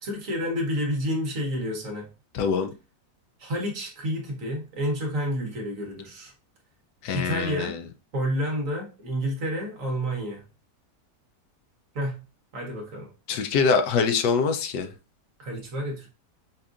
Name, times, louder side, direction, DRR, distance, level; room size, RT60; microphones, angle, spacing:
voice 1, 0.0-2.1 3.4-6.3 7.1-7.7 8.1-10.4 11.9-12.2 12.5-13.1 15.4-16.1, equal, 55° right, 1.3 m, -29 dB
voice 2, 2.3-2.7 7.0-7.8 13.3-14.9, left 5 dB, 80° left, 1.2 m, -24 dB
5.4 x 2.5 x 2.4 m
omnidirectional pair, 1.8 m